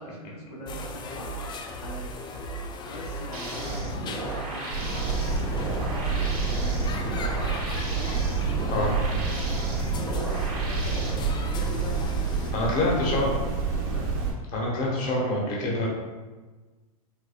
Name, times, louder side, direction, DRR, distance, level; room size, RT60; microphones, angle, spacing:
voice 1, 0.0-2.2 2.6-8.2 8.6-14.0 14.8-15.2, equal, 85° left, -5 dB, 1.0 m, -42 dB
sound 1, 0.7-12.5, equal, 25° left, 0.3 m, -37 dB
sound 2, 3.3-11.1, right 2 dB, 70° right, 1.0 m, -35 dB
sound 3, 4.7-14.3, right 4 dB, 45° right, 1.0 m, -28 dB
voice 2, 12.5-13.3 14.5-15.9, left 2 dB, 45° left, -3 dB, 0.9 m, -26 dB
4.3 x 2.1 x 2.4 m, 1.3 s
hypercardioid pair, 110°, 19 cm